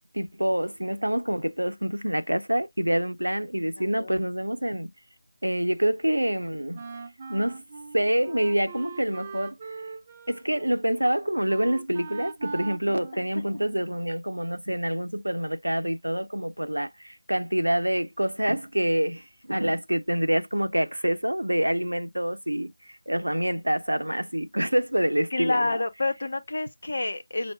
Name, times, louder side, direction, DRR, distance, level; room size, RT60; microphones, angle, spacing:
voice 1, 0.1-4.9 5.4-6.8 7.3-7.6 7.9-9.6 10.3-25.8, right 1 dB, 80° right, 0.7 m, -26 dB
voice 2, 3.8-4.1 25.3-27.5, left 2 dB, 50° left, 0.8 m, -28 dB
Wind instrument woodwind instrument, 6.7-14.0, right 4 dB, 25° right, 0.4 m, -41 dB
6.0 x 2.1 x 3.5 m
figure-of-eight pair, 165°, 0 cm